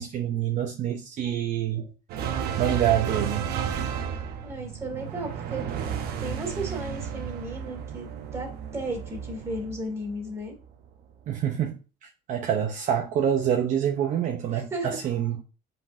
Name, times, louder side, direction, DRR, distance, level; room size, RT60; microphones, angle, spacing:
voice 1, 0.0-1.9 2.6-3.5 11.3-15.4, right 9 dB, 50° right, 0.8 m, -26 dB
sound 1, 2.1-10.7, right 8 dB, 70° right, 1.2 m, -33 dB
voice 2, 4.4-5.6 6.2-10.5 14.5-15.0, right 1 dB, 15° right, 2.7 m, -34 dB
8.2 x 5.4 x 2.7 m
cardioid pair, 175°, 17 cm